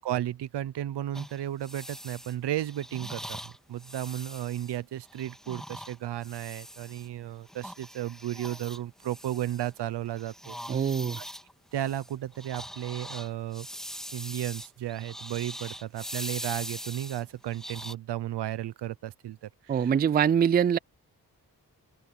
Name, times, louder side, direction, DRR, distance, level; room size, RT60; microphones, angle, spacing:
voice 1, 0.0-10.6 11.2-11.3 11.7-13.7 14.1-19.9, right 12 dB, 90° right, 0.9 m, -34 dB
sound 1, 1.1-7.1 7.5-9.9 10.2-17.9, equal, ahead, 2.7 m, -42 dB
voice 2, 10.7-11.2 19.7-20.8, right 8 dB, 25° right, 0.3 m, -23 dB
open air
supercardioid pair, 45°, 40 cm